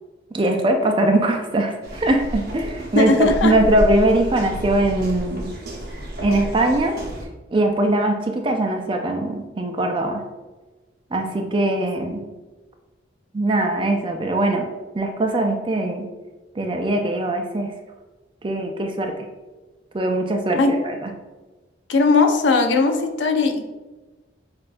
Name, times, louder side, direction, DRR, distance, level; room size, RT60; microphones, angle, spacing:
voice 1, 0.3-5.5 6.2-6.9 7.5-10.2 11.1-12.2 13.3-14.7 14.9-16.1 16.6-17.7 18.4-19.1 19.9-21.1, right 1 dB, 25° right, 4 dB, 0.4 m, -21 dB
sound 1, 1.8-7.3, right 1 dB, 50° right, 0.7 m, -31 dB
voice 2, 2.9-3.5 20.5-20.7 21.9-23.6, left 3 dB, 80° left, 5 dB, 0.5 m, -18 dB
6.0 x 2.3 x 2.5 m, 1.2 s
head